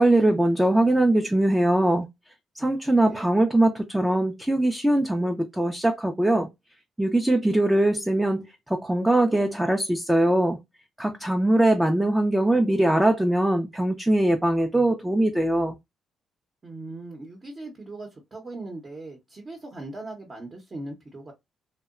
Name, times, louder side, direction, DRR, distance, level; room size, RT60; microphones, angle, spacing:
voice 1, 0.0-2.1 2.6-6.5 7.0-10.6 11.0-15.8, right 1 dB, 5° right, 0.4 m, -21 dB
voice 2, 2.6-3.3 16.6-21.3, right 2 dB, 35° right, 0.8 m, -39 dB
2.7 x 2.1 x 2.4 m
cardioid pair, 90°, 0 cm